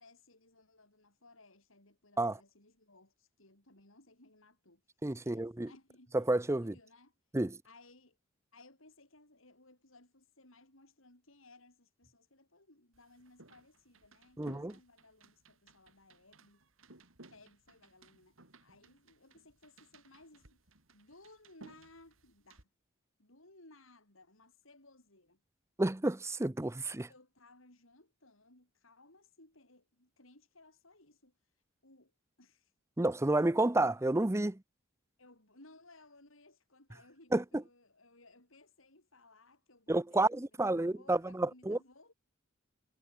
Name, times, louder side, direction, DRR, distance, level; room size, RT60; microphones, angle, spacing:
voice 1, 0.0-6.3 6.6-7.4 7.6-8.2 8.5-16.6 17.3-22.7 23.2-25.4 27.1-32.1 32.4-32.7 35.2-42.1, left 2 dB, 80° left, 8.0 m, -61 dB
voice 2, 5.0-5.7 6.1-6.7 7.3-7.6 14.4-14.7 25.8-27.1 33.0-34.6 37.3-37.4 39.9-41.8, right 2 dB, 15° right, 0.6 m, -30 dB
sound 1, 12.9-22.6, right 2 dB, 75° right, 5.2 m, -60 dB
head